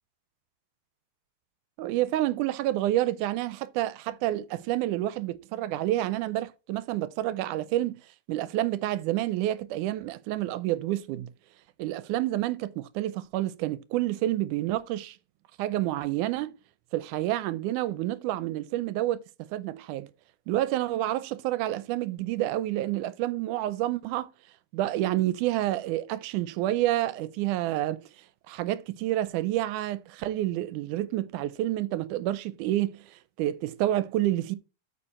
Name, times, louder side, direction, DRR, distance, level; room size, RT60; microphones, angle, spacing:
voice 1, 1.8-8.0 8.3-11.3 11.8-15.2 15.6-16.5 16.9-19.2 19.5-20.1 20.5-24.3 24.7-28.0 28.5-34.6, right 14 dB, 90° right, 2.1 m, -29 dB
8.7 x 5.1 x 4.2 m
omnidirectional pair, 3.6 m